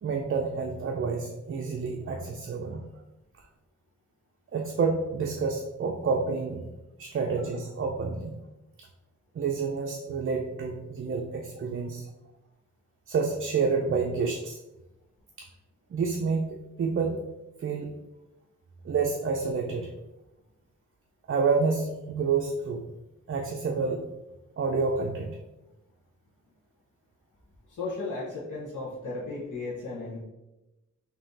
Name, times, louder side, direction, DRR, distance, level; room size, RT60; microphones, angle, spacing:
voice 1, 0.0-2.9 4.5-6.6 7.0-8.4 9.4-12.1 13.1-14.6 15.4-15.5 15.9-17.2 17.6-17.9 18.8-19.9 21.3-22.8 23.3-24.0 24.6-25.4, right 4 dB, 45° right, 2 dB, 0.4 m, -28 dB
voice 2, 27.7-30.2, left 3 dB, 85° left, -6 dB, 0.9 m, -35 dB
3.6 x 2.7 x 3.8 m, 0.98 s
wide cardioid pair, 100°, 30 cm